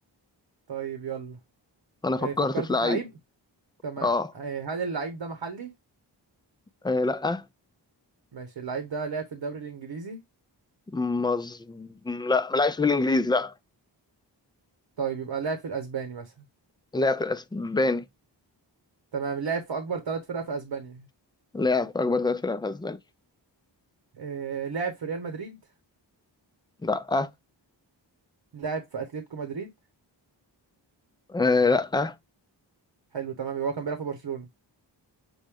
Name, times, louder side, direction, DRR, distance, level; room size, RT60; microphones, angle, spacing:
voice 1, 0.7-1.4 2.2-3.1 3.8-5.7 8.3-10.2 15.0-16.3 19.1-21.1 24.2-25.6 28.5-29.7 33.1-34.5, right 5 dB, 65° right, 1.1 m, -32 dB
voice 2, 2.0-3.0 4.0-4.3 6.8-7.4 10.9-13.5 16.9-18.0 21.5-23.0 26.8-27.3 31.3-32.2, left 3 dB, 10° left, 0.4 m, -25 dB
6.2 x 2.1 x 3.5 m
cardioid pair, 55°, 45 cm